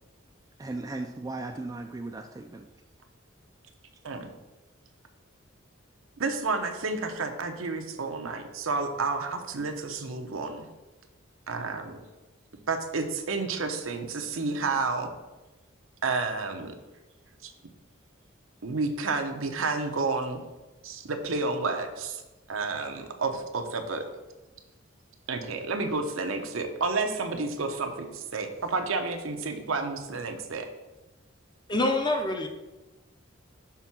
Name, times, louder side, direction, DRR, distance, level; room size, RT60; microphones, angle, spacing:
voice 1, 0.6-2.7, right 2 dB, 15° right, 3 dB, 0.3 m, -36 dB
voice 2, 6.2-10.7 11.5-12.0 12.7-15.1 16.0-16.7 17.4-17.5 18.6-20.4 20.8-22.2 22.5-24.0 25.3-30.7, right 3 dB, 80° right, 5 dB, 0.8 m, -30 dB
voice 3, 31.7-32.5, left 2 dB, 20° left, 5 dB, 0.6 m, -25 dB
5.9 x 3.7 x 5.9 m, 1.1 s
head